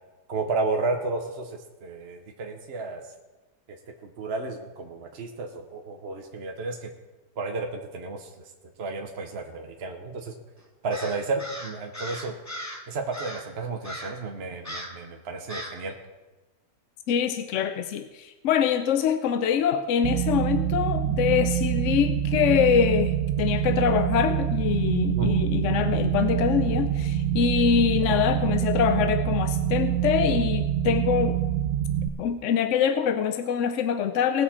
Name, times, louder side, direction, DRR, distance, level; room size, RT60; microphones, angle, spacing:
voice 1, 0.3-3.0 4.0-6.9 7.4-8.4 8.8-10.3 10.8-12.4 12.9-15.9 25.1-25.4 28.1-28.2, right 3 dB, 50° right, 3 dB, 1.1 m, -32 dB
Crow, 10.9-12.8 13.1-13.5 13.8-14.2 14.6-15.0 15.5-15.8, equal, 15° left, 1.0 m, -38 dB
voice 2, 17.1-31.4 32.2-34.4, left 8 dB, 65° left, 9 dB, 0.9 m, -24 dB
sound 1, 20.0-32.1, right 11 dB, 70° right, 1.0 m, -26 dB
19.5 x 6.6 x 4.3 m, 1.2 s
omnidirectional pair, 1.5 m